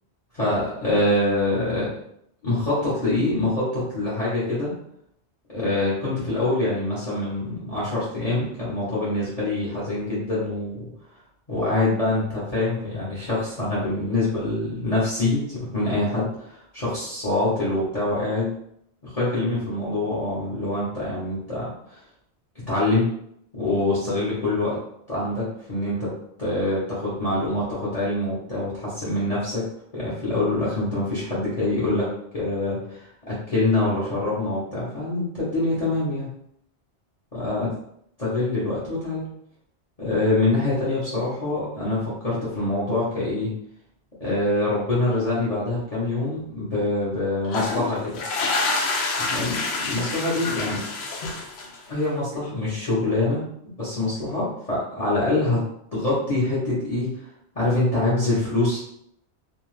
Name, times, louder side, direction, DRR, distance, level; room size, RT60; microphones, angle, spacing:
voice 1, 0.3-1.9 2.4-4.7 5.5-10.9 11.5-18.5 19.0-22.0 22.7-23.1 23.5-24.8 25.1-26.1 26.4-29.7 29.9-36.3 37.3-37.7 38.2-39.2 40.0-43.5 44.2-48.2 49.3-49.6 49.8-50.8 51.9-53.4 53.8-55.6 55.9-57.1 57.5-58.8, left 2 dB, 35° left, -8 dB, 0.9 m, -25 dB
sound 1, 47.4-52.0, left 3 dB, 75° left, 0.8 m, -27 dB
2.6 x 2.3 x 3.1 m, 0.73 s
omnidirectional pair, 1.1 m